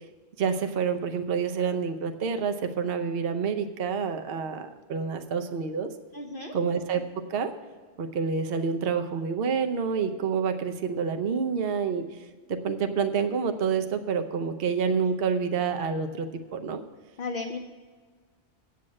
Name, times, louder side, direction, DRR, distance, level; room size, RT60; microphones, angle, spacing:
voice 1, 0.4-5.9 6.5-7.5 8.0-12.0 12.5-16.8, right 6 dB, 55° right, 7 dB, 0.9 m, -28 dB
voice 2, 6.1-6.5 17.2-17.6, left 3 dB, 50° left, 2 dB, 0.9 m, -34 dB
8.5 x 7.6 x 7.5 m, 1.5 s
omnidirectional pair, 1.3 m